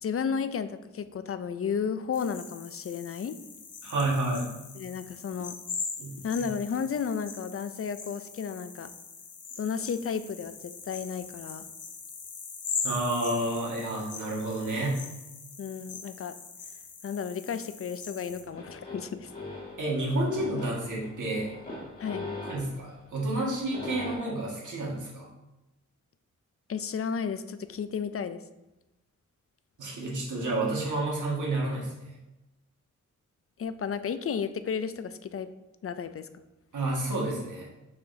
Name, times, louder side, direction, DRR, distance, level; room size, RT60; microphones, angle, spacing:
voice 1, 0.0-3.4 4.8-5.6 6.2-8.9 9.6-11.7 15.6-16.4 17.0-19.3 22.0-22.3 26.7-28.4 33.6-35.5 35.8-36.3, left 6 dB, 50° left, 12 dB, 0.4 m, -33 dB
sound 1, 2.1-18.4, left 5 dB, 75° left, 1.0 m, -41 dB
voice 2, 3.8-4.5 6.0-6.2 12.8-15.0 19.8-21.5 22.4-25.3 29.8-32.1 36.7-37.7, right 2 dB, 80° right, -4 dB, 1.8 m, -30 dB
sound 2, 18.3-24.2, left 2 dB, 30° left, 2.1 m, -41 dB
6.6 x 5.6 x 2.7 m, 0.98 s
wide cardioid pair, 105°, 30 cm